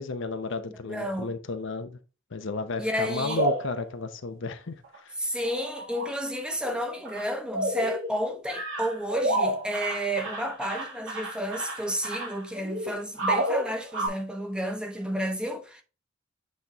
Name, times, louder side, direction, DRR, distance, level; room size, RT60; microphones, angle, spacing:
voice 1, 0.0-2.0 2.3-4.7 5.0-5.1, left 3 dB, 60° left, 0.7 m, -33 dB
voice 2, 0.8-1.3 2.8-3.4 5.2-15.8, equal, 5° right, 0.9 m, -31 dB
sound 1, 3.0-3.9 4.8-5.0 5.5-6.1 6.6-6.7 7.0-7.2 7.5-8.2 8.5-14.1, right 1 dB, 70° right, 2.5 m, -30 dB
8.3 x 4.1 x 3.0 m
head